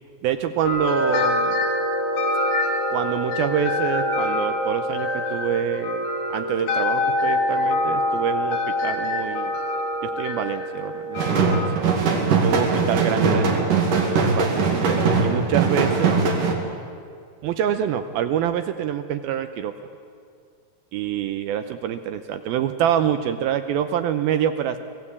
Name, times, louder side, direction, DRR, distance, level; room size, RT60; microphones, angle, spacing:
voice 1, 0.2-1.6 2.9-9.5 10.0-11.6 12.4-13.7 14.1-16.2 17.4-19.7 20.9-24.8, right 9 dB, 80° right, 9 dB, 2.4 m, -26 dB
sound 1, 0.7-11.7, left 1 dB, 70° left, 5.6 m, -25 dB
sound 2, 11.2-16.5, right 4 dB, 55° right, 3.7 m, -20 dB
25.0 x 18.0 x 8.5 m, 2.2 s
omnidirectional pair, 4.8 m